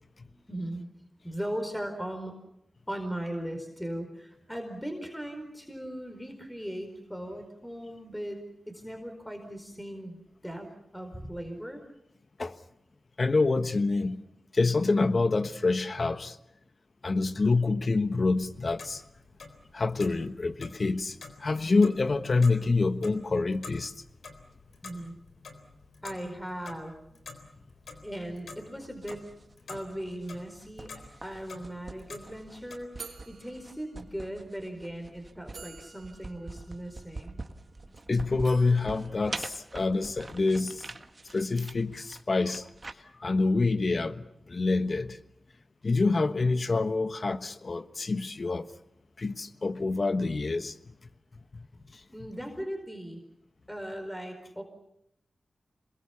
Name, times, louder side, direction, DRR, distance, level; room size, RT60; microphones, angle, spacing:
voice 1, 0.2-2.3 2.9-11.8 24.8-25.2 26.0-27.0 27.9-29.3 29.7-30.9 31.2-37.4 52.1-53.2 53.7-54.6, right 1 dB, 5° left, 4.5 m, -38 dB
voice 2, 13.2-14.2 14.5-16.4 17.0-19.0 19.7-23.9 38.1-40.8 41.3-42.7 43.1-45.2 45.8-48.7 49.2-50.8 51.5-51.7, left 3 dB, 50° left, 1.3 m, -27 dB
Clock, 18.4-32.8, left 4 dB, 85° left, 3.8 m, -49 dB
sound 1, 28.8-42.9, right 3 dB, 40° right, 1.7 m, -45 dB
sound 2, 33.0-34.4 35.0-35.1 35.5-37.9 38.4-40.1, right 4 dB, 70° right, 3.4 m, -51 dB
28.0 x 21.5 x 7.1 m
cardioid pair, 65°, 0 cm